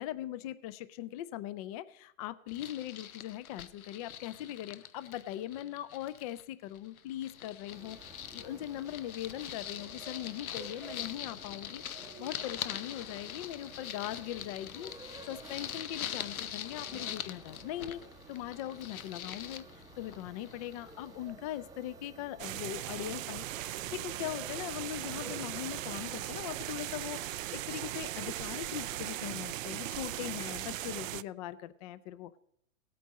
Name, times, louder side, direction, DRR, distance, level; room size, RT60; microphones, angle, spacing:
voice 1, 0.0-14.9 15.3-18.0 18.3-27.2 27.5-32.4, left 13 dB, 30° left, 15 dB, 0.4 m, -40 dB
sound 1, 2.5-6.4 6.7-21.1, left 9 dB, 85° left, 0.9 m, -43 dB
sound 2, 7.7-26.4, right 3 dB, 10° right, 0.7 m, -52 dB
sound 3, 22.4-31.2, right 15 dB, 70° right, 0.5 m, -38 dB
17.5 x 8.5 x 4.1 m, 0.73 s
hypercardioid pair, 130°, 42 cm